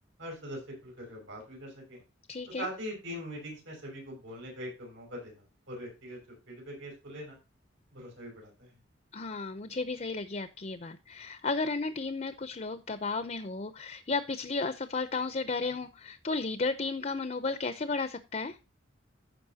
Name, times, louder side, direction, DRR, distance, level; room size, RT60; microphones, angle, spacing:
voice 1, 0.2-2.0 2.6-7.4 7.9-8.8, equal, 80° right, 0 dB, 5.9 m, -42 dB
voice 2, 2.3-2.7 9.1-18.6, left 3 dB, 35° left, 10 dB, 0.6 m, -33 dB
15.0 x 5.4 x 2.8 m, 0.28 s
head